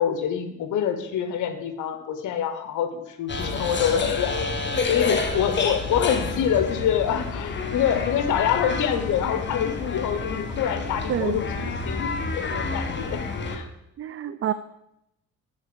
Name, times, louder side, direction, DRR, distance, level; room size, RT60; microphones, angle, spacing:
voice 1, 0.0-4.4 4.9-13.7, left 9 dB, 80° left, 9 dB, 1.2 m, -26 dB
sound 1, 3.3-13.6, left 3 dB, 35° left, 1.5 m, -29 dB
voice 2, 11.1-11.4 14.0-14.5, right 10 dB, 45° right, 13 dB, 0.5 m, -27 dB
7.2 x 7.1 x 6.8 m, 0.84 s
cardioid pair, 90°, 30 cm